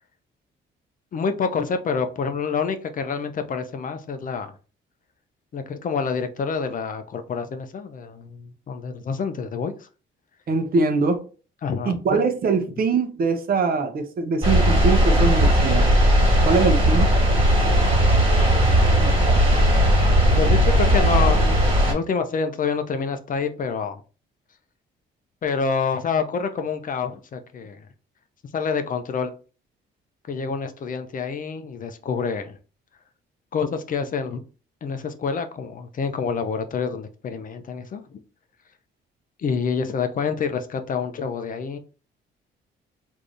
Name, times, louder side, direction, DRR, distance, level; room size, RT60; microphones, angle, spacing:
voice 1, 1.1-4.5 5.5-9.9 11.6-12.2 19.0-19.1 20.4-21.6 21.8-24.0 25.4-27.8 28.5-29.3 30.3-32.6 33.5-34.4 34.8-38.0 39.4-41.8, left 5 dB, 45° left, 0.4 m, -27 dB
voice 2, 10.5-11.2 11.8-15.9 16.4-17.2, right 4 dB, 50° right, 0.6 m, -22 dB
sound 1, 14.4-21.9, equal, 30° right, 1.6 m, -17 dB
3.3 x 2.6 x 2.5 m
cardioid pair, 90°, 20 cm